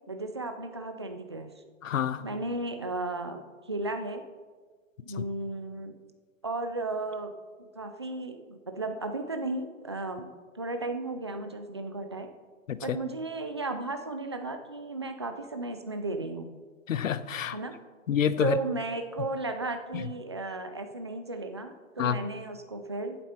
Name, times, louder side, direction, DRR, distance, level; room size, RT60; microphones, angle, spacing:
voice 1, 0.1-1.5 2.2-4.2 5.0-5.9 6.4-7.3 7.6-10.3 10.6-12.3 12.8-16.5 17.5-17.7 18.4-23.2, right 2 dB, 25° right, 6 dB, 0.3 m, -34 dB
voice 2, 1.8-2.2 5.2-5.3 12.7-13.0 16.9-17.6 18.1-18.6 22.0-22.2, left 9 dB, 75° left, 14 dB, 0.9 m, -28 dB
14.5 x 8.3 x 4.3 m, 1.5 s
hypercardioid pair, 160°, 39 cm